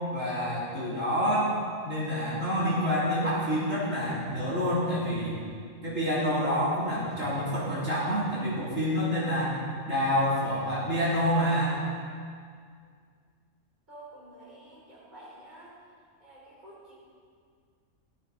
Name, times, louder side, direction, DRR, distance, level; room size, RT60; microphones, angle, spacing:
voice 1, 0.1-1.5 1.8-5.4 5.8-9.6 9.9-11.8, equal, 75° right, -9 dB, 3.6 m, -27 dB
voice 2, 13.9-15.7 16.2-16.9, right 1 dB, 35° right, -7 dB, 4.7 m, -49 dB
16.5 x 14.0 x 4.1 m, 2.1 s
omnidirectional pair, 1.4 m